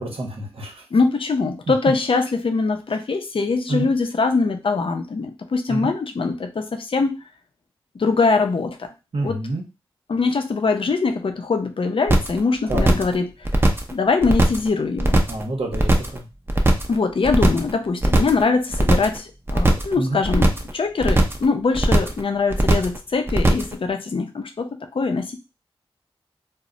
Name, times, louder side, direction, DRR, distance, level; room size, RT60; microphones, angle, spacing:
voice 1, 0.0-0.8 3.7-3.9 5.7-5.9 9.1-9.6 12.7-12.9 15.3-16.3 20.0-20.2, right 2 dB, 65° right, 2 dB, 0.8 m, -28 dB
voice 2, 0.9-7.2 7.9-8.9 9.2-9.4 10.1-13.3 13.9-15.2 16.9-25.4, left 4 dB, 60° left, 6 dB, 0.5 m, -22 dB
sound 1, 12.1-12.4 12.7-13.2 13.5-13.9 14.2-14.7 15.0-15.4 15.7-16.2 16.5-17.0 17.2-17.7 18.0-18.4 18.7-19.2 19.5-19.9 20.2-20.7 21.0-21.5 21.8-22.2 22.5-23.0 23.3-23.7, right 1 dB, 20° right, 0.5 m, -18 dB
2.1 x 2.0 x 3.7 m, 0.29 s
cardioid pair, 45°, 10 cm